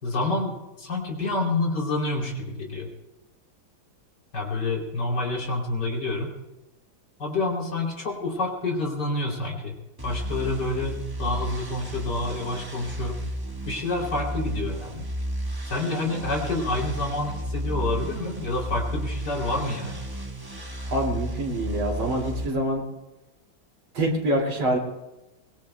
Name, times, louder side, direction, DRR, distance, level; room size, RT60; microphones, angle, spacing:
voice 1, 0.0-2.9 4.3-6.3 7.2-9.8 10.0-13.2 13.7-15.0 15.6-20.0, left 2 dB, 55° left, -1 dB, 3.8 m, -28 dB
sound 1, 10.0-22.5, right 1 dB, 15° right, 0.8 m, -33 dB
voice 2, 20.9-22.8 23.9-24.8, right 1 dB, 85° right, 0 dB, 3.4 m, -25 dB
23.5 x 21.0 x 2.2 m, 1.0 s
omnidirectional pair, 2.2 m